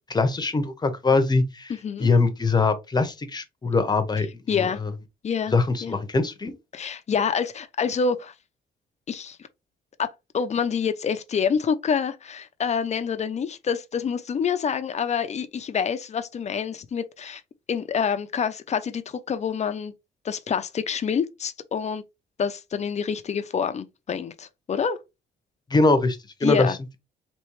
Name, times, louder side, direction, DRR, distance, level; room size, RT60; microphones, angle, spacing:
voice 1, 0.1-1.7 2.0-4.9 5.5-6.5 25.7-26.7, left 3 dB, 25° left, 1.0 m, -22 dB
voice 2, 4.5-4.8 5.2-5.5 5.8-5.9 6.7-8.3 9.1-9.4 10.0-10.1 10.3-17.4 17.7-19.9 20.2-22.0 22.4-25.0 26.4-26.8, left 6 dB, 40° left, 0.6 m, -27 dB
4.3 x 3.0 x 3.2 m
cardioid pair, 105°, 18 cm